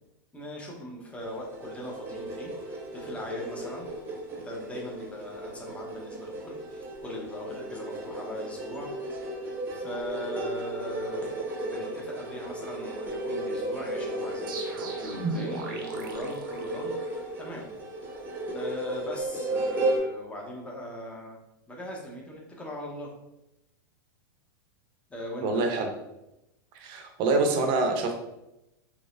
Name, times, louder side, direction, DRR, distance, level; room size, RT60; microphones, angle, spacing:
voice 1, 0.3-3.9 4.4-9.4 9.7-18.2 18.5-21.4 21.7-23.1 25.1-25.7, left 1 dB, 10° left, -2 dB, 0.9 m, -40 dB
sound 1, 1.2-20.0, right 2 dB, 20° right, 0.9 m, -35 dB
sound 2, 14.5-17.2, right 3 dB, 75° right, 0.7 m, -36 dB
voice 2, 25.4-25.9 26.7-28.1, right 3 dB, 40° right, 4 dB, 0.7 m, -25 dB
3.9 x 2.9 x 2.6 m, 0.91 s
hypercardioid pair, 120°, 11 cm